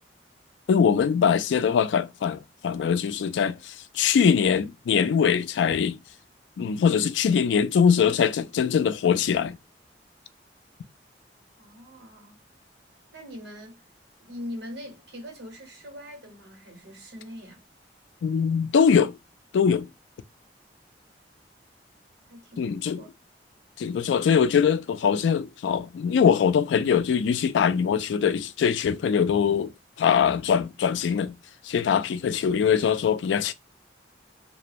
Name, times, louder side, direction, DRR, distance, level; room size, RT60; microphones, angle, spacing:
voice 1, 0.7-6.0 6.6-9.6 18.2-19.2 19.5-19.9 22.6-23.0 23.8-29.7 30.0-31.3 31.6-33.5, left 7 dB, 80° left, 0.3 m, -22 dB
voice 2, 11.6-12.4 13.1-13.8 14.2-17.6 22.3-23.1, left 1 dB, 70° right, 1.3 m, -42 dB
2.5 x 2.1 x 2.9 m
head